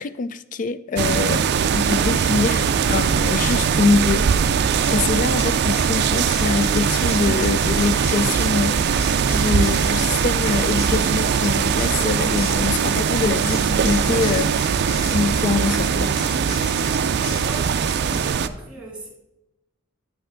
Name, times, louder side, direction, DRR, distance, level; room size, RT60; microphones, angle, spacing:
voice 1, 0.0-1.4 1.7-2.6 2.9-4.3 4.9-14.5 15.0-16.1, left 4 dB, 40° left, 15 dB, 0.3 m, -24 dB
sound 1, 1.0-18.5, right 6 dB, 50° right, 0.4 m, -21 dB
sound 2, 3.8-3.9 4.6-18.3, left 3 dB, 85° left, 1.7 m, -37 dB
voice 2, 17.4-19.1, right 2 dB, 5° right, 0 dB, 1.9 m, -39 dB
8.9 x 5.5 x 3.8 m, 0.95 s
head